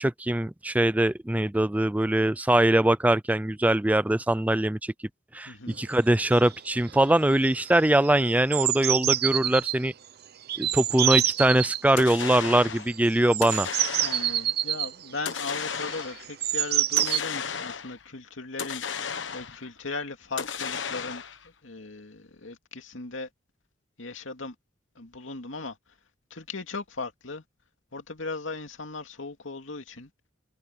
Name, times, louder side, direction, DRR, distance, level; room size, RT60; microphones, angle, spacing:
voice 1, 0.0-4.9 5.3-9.9 10.6-13.7, right 1 dB, 10° right, 0.4 m, -22 dB
voice 2, 5.5-5.8 14.0-21.2 21.6-23.3 24.0-24.5 25.0-25.8 26.3-27.4 27.9-30.1, left 3 dB, 90° left, 2.5 m, -37 dB
sound 1, 5.9-6.0 6.2-6.6 6.9-7.2 7.5-9.8 10.5-11.8 12.9-17.2, right 12 dB, 55° right, 0.8 m, -27 dB
sound 2, 12.0-12.9 13.4-14.5 15.3-16.3 17.0-18.0 18.6-19.7 20.4-21.5, left 7 dB, 70° left, 1.2 m, -34 dB
head